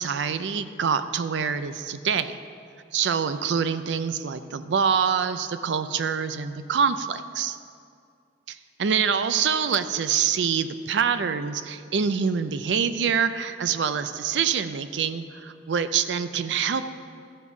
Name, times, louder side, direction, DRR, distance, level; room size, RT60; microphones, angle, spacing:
voice 1, 0.0-2.4 2.9-7.6 8.8-16.9, right 7 dB, 85° right, 12 dB, 0.4 m, -25 dB
13.5 x 5.4 x 4.8 m, 2.3 s
head